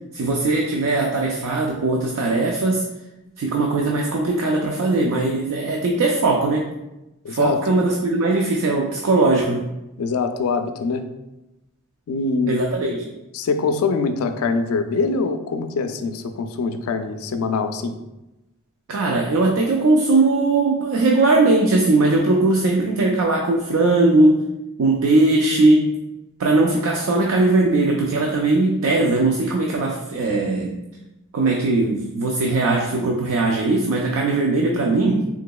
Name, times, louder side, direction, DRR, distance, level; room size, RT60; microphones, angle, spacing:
voice 1, 0.1-2.9 3.4-6.7 7.3-9.7 12.5-13.1 18.9-24.4 24.8-26.0 26.4-30.8 31.3-35.2, right 2 dB, 85° right, 0 dB, 0.4 m, -19 dB
voice 2, 7.2-7.6 10.0-11.0 12.1-12.6 13.3-18.0, left 4 dB, 85° left, 8 dB, 0.3 m, -23 dB
3.7 x 2.8 x 2.2 m, 0.96 s
head